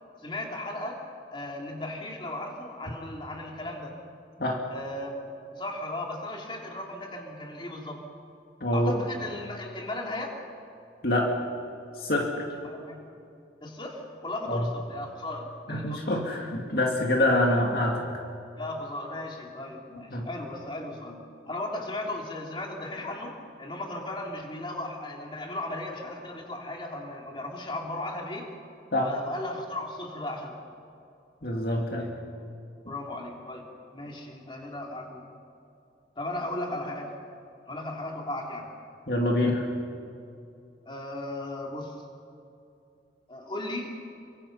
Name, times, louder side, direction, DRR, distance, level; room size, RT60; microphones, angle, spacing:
voice 1, 0.2-1.0 1.3-4.0 4.7-5.2 5.5-8.0 8.7-10.3 12.6-13.0 13.6-16.1 17.2-17.6 18.6-28.5 29.0-30.6 32.9-33.7 33.9-35.2 36.1-37.1 37.7-38.7 40.8-42.0 43.3-43.9, left 1 dB, 25° left, 0 dB, 3.4 m, -36 dB
voice 2, 8.6-9.0 11.0-11.4 12.0-12.5 14.5-14.7 15.7-18.0 20.1-20.3 28.9-29.1 31.4-32.2 39.1-39.7, left 1 dB, 55° left, 0 dB, 2.3 m, -26 dB
29.0 x 24.5 x 5.6 m, 2.6 s
head